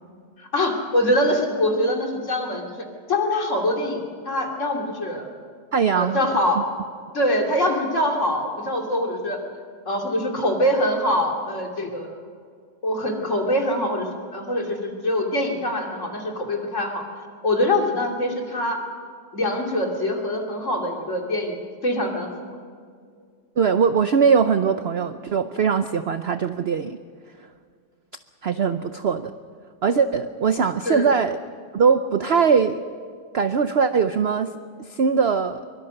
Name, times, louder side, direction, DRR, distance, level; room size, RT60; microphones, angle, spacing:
voice 1, 0.4-2.8 3.1-5.3 5.9-6.6 7.1-9.4 9.9-12.1 12.8-17.0 17.4-18.8 19.3-21.6 21.8-22.3 30.9-31.1, left 1 dB, 40° left, 2 dB, 3.1 m, -24 dB
voice 2, 5.7-6.3 23.6-27.0 28.4-29.3 29.8-31.4 31.7-32.8 33.3-34.5 34.8-35.6, right 6 dB, 65° right, 10 dB, 0.6 m, -21 dB
23.5 x 23.0 x 6.6 m, 2.1 s
omnidirectional pair, 1.9 m